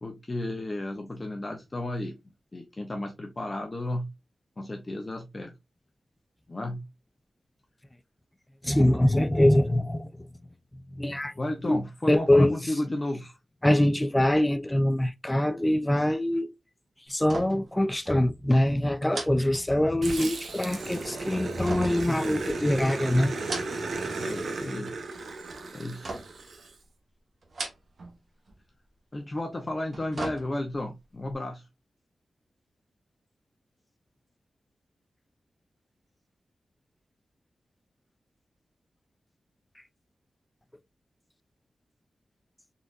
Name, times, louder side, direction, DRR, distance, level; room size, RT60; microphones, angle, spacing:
voice 1, 0.0-2.2 2.5-4.1 4.6-5.5 6.5-6.9 11.4-13.3 24.2-25.0 25.7-26.1 29.1-31.7, left 1 dB, 25° left, 0.8 m, -33 dB
voice 2, 8.6-10.1 11.0-11.3 11.6-11.8 12.1-12.6 13.6-16.5 17.1-23.3, left 1 dB, 10° left, 0.4 m, -23 dB
sound 1, 17.3-17.8 18.1-18.2 19.1-20.2 21.6-22.8 23.3-24.1 24.4-25.0 26.0-26.5 27.4-28.2 28.5-28.6 29.7-30.9 31.3-31.4, right 2 dB, 55° right, 1.1 m, -39 dB
Growling, 20.0-26.7, right 3 dB, 75° right, 0.9 m, -35 dB
3.9 x 3.3 x 2.4 m
wide cardioid pair, 125°, 0 cm